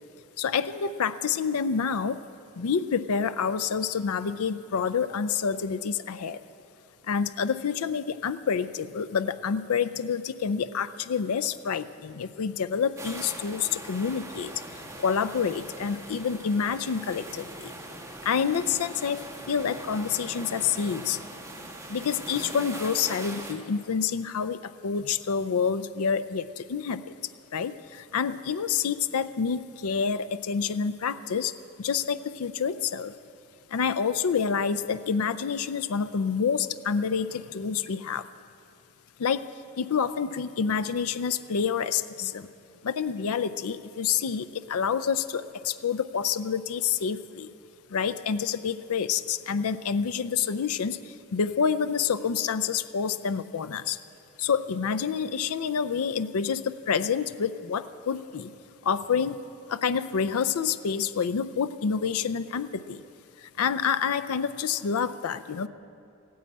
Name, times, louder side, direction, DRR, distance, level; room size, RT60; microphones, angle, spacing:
voice 1, 0.4-2.2 2.6-6.4 7.1-14.5 15.0-17.7 18.2-21.2 21.9-27.1 27.5-33.1 33.7-38.2 39.2-39.5 39.8-42.5 42.8-47.5 47.9-54.0 54.4-58.5 58.8-59.4 59.7-63.0 63.4-65.7, left 6 dB, 80° left, 13 dB, 0.5 m, -28 dB
sound 1, 13.0-23.5, right 1 dB, 15° right, 1.5 m, -41 dB
15.5 x 9.3 x 8.6 m, 2.6 s
head